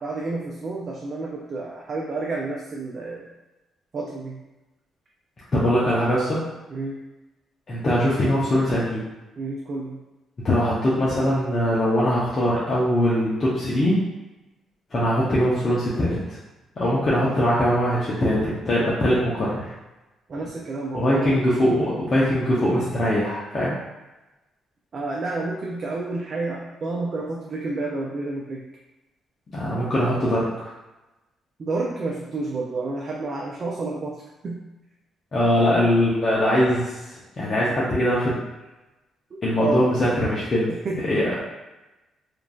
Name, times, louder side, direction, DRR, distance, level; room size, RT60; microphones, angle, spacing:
voice 1, 0.0-3.3 3.9-4.4 6.7-7.0 9.4-10.0 20.3-21.4 23.5-23.6 24.9-28.7 31.6-34.6 39.3-39.9 40.7-41.2, right 3 dB, 45° right, -2 dB, 0.4 m, -30 dB
voice 2, 5.5-6.4 7.7-9.0 10.4-14.0 14.9-16.4 16.8-19.7 20.9-23.8 29.5-30.5 35.3-38.4 39.4-40.7 41.0-41.4, equal, 40° left, -8 dB, 0.7 m, -21 dB
2.9 x 2.5 x 2.3 m, 1.1 s
cardioid pair, 90°, 0 cm